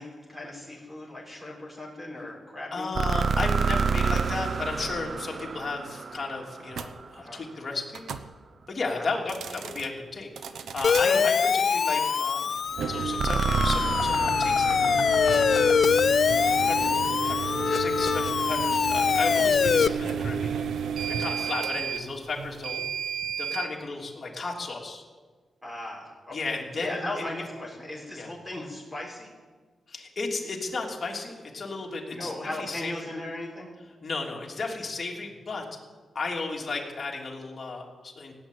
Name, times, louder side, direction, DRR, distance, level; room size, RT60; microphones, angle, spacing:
voice 1, 0.0-2.9 7.1-7.4 8.8-9.3 10.9-11.3 21.2-21.5 25.6-29.3 32.1-33.7, left 1 dB, 10° right, -3 dB, 6.5 m, -37 dB
voice 2, 2.7-8.0 8.7-10.3 10.7-14.8 15.2-15.6 16.5-20.5 21.1-22.8 23.1-25.0 26.3-27.2 28.1-28.3 29.9-32.3 32.6-33.1 34.0-35.6 36.1-38.3, left 3 dB, 40° left, -1 dB, 3.2 m, -34 dB
sound 1, 3.0-7.1 13.2-16.3, right 5 dB, 55° right, 0.6 m, -29 dB
sound 2, 6.7-6.9 7.9-8.3 9.2-9.9 10.4-11.1 12.7-23.7, right 7 dB, 85° right, 0.9 m, -32 dB
Siren, 10.8-19.9, left 6 dB, 60° left, 0.4 m, -24 dB
17.0 x 8.4 x 9.3 m, 1.4 s
cardioid pair, 85°, 0 cm